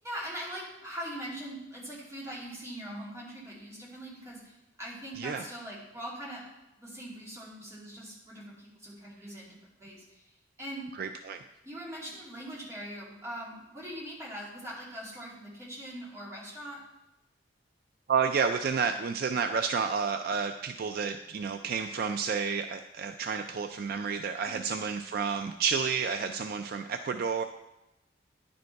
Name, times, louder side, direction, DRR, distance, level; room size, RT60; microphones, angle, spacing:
voice 1, 0.0-6.4 6.8-9.5 9.8-10.9 11.6-16.8 24.5-24.6, equal, 15° right, -6 dB, 2.6 m, -42 dB
voice 2, 11.0-11.4 18.1-27.4, right 5 dB, 55° right, 7 dB, 0.4 m, -30 dB
10.0 x 5.1 x 4.6 m, 0.93 s
head